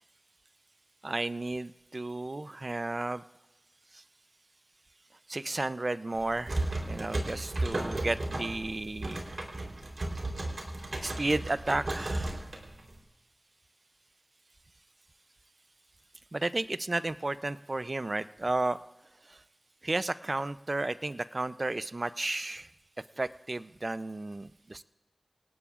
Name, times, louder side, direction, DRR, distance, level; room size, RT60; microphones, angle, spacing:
voice 1, 1.0-3.2 3.9-4.0 5.3-9.2 11.0-12.4 16.3-18.8 19.3-19.4 19.8-22.7 23.2-24.8, right 2 dB, 50° right, 14 dB, 0.5 m, -33 dB
sound 1, 6.1-13.0, right 2 dB, 70° right, 3.6 m, -34 dB
27.5 x 18.5 x 2.5 m, 1.1 s
wide cardioid pair, 45°, 0 cm